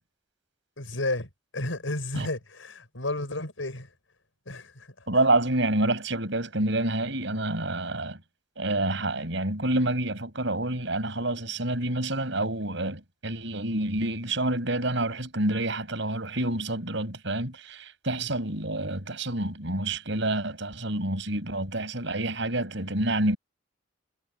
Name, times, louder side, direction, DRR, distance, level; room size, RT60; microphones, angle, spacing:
voice 1, 0.8-3.9 4.5-4.9 18.2-18.3, left 2 dB, 80° left, 5.6 m, -32 dB
voice 2, 5.1-8.2 8.6-23.4, right 2 dB, 65° right, 5.9 m, -28 dB
head